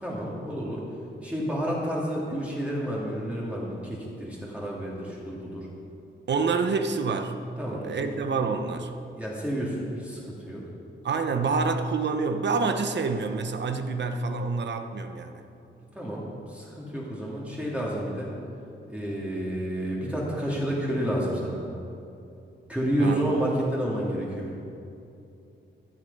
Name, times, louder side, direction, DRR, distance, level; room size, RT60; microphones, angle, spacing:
voice 1, 0.0-0.8 1.2-5.7 7.6-8.1 9.2-10.6 15.9-18.3 18.9-21.6 22.7-24.5, right 1 dB, 5° right, -6 dB, 2.4 m, -30 dB
voice 2, 6.3-7.4 7.7-8.9 11.0-15.5 23.0-23.3, right 4 dB, 60° right, 7 dB, 0.9 m, -27 dB
14.0 x 9.8 x 5.3 m, 2.7 s
wide cardioid pair, 130°, 20 cm